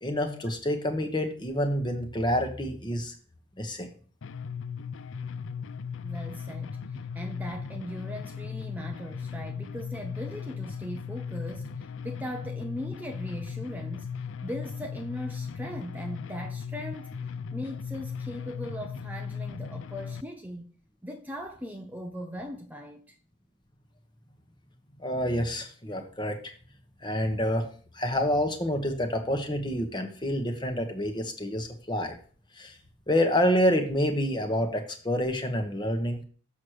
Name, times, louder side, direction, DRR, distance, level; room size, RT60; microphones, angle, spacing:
voice 1, 0.0-3.1 3.6-3.9 25.0-26.5 27.0-27.6 27.9-32.2 32.6-32.8 33.1-36.2, equal, 20° left, 1.1 m, -28 dB
sound 1, 4.2-20.2, left 6 dB, 70° left, 0.4 m, -37 dB
voice 2, 6.0-14.1 14.4-17.2 17.5-20.7 21.0-23.1, equal, 10° right, 0.6 m, -39 dB
7.2 x 6.4 x 4.6 m
head